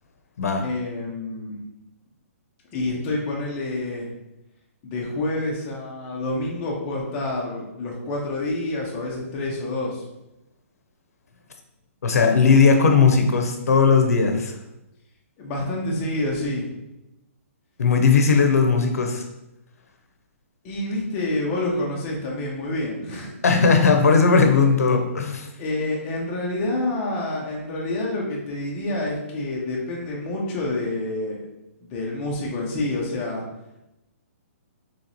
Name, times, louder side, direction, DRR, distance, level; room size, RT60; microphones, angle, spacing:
voice 1, 0.6-1.6 2.7-4.1 4.8-10.1 15.4-16.7 20.6-23.3 25.6-31.4 31.8-33.4, left 2 dB, 15° left, -3 dB, 0.5 m, -28 dB
voice 2, 12.0-14.5 17.8-19.2 23.4-25.5, left 5 dB, 85° left, 5 dB, 0.7 m, -17 dB
3.1 x 3.0 x 3.9 m, 0.93 s
hypercardioid pair, 180°, 8 cm